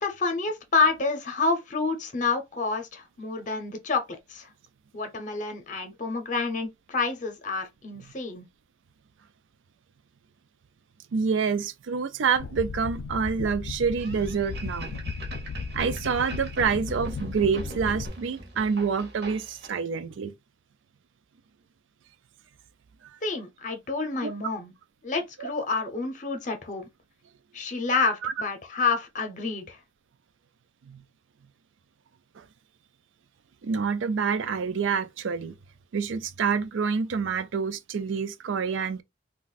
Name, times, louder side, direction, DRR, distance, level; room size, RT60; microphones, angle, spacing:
voice 1, 0.0-4.0 4.3-4.5 4.9-8.5 23.2-24.7 25.0-26.9 27.5-29.8, left 4 dB, 40° left, 0.7 m, -28 dB
voice 2, 11.1-15.0 15.7-20.3 24.2-24.3 25.4-25.5 28.2-28.3 30.9-31.0 32.4-32.5 33.6-35.6 35.9-39.0, right 5 dB, 80° right, 0.4 m, -27 dB
sound 1, 12.4-18.1, left 5 dB, 75° left, 0.3 m, -36 dB
sound 2, 14.0-19.7, right 2 dB, 55° right, 0.8 m, -41 dB
2.5 x 2.3 x 3.9 m
head